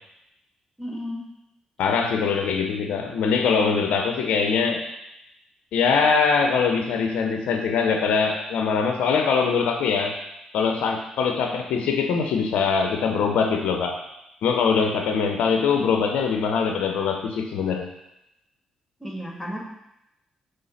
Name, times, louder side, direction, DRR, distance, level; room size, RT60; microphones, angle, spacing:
voice 1, 0.8-1.2 11.7-11.9 19.0-19.6, equal, 5° left, -2 dB, 2.0 m, -33 dB
voice 2, 1.8-4.8 5.7-10.1 10.5-14.0 14.4-17.9, left 5 dB, 75° left, 4 dB, 0.5 m, -22 dB
5.5 x 3.3 x 5.6 m, 0.86 s
hypercardioid pair, 50°, 2 cm